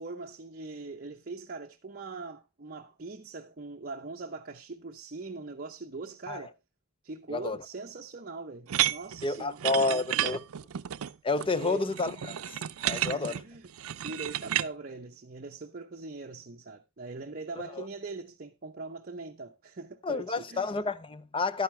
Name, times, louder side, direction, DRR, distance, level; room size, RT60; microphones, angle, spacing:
voice 1, 0.0-6.6 7.0-10.4 11.5-11.9 12.9-13.7 14.0-20.7, right 3 dB, 45° right, 0.7 m, -41 dB
sound 1, 8.7-14.7, right 12 dB, 90° right, 0.5 m, -32 dB
voice 2, 9.2-10.4 11.2-12.4 12.8-13.4 17.7-17.8 20.0-21.6, left 3 dB, 25° left, 0.5 m, -30 dB
11.5 x 9.5 x 3.2 m
head